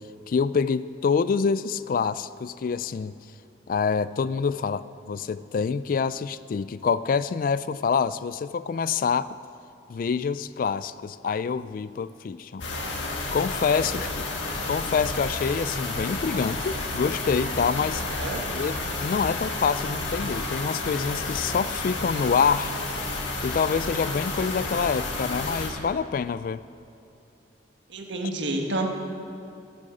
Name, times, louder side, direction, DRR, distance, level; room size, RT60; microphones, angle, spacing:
voice 1, 0.3-3.1 3.7-9.3 9.9-12.6 13.3-14.3 14.7-18.0 18.5-22.8 23.4-26.6, left 6 dB, 50° left, 16 dB, 0.3 m, -26 dB
sound 1, 12.6-25.7, left 2 dB, 85° left, 1.7 m, -31 dB
voice 2, 17.9-18.4 27.9-28.9, right 2 dB, 75° right, 2 dB, 1.5 m, -30 dB
10.5 x 8.6 x 7.7 m, 2.7 s
head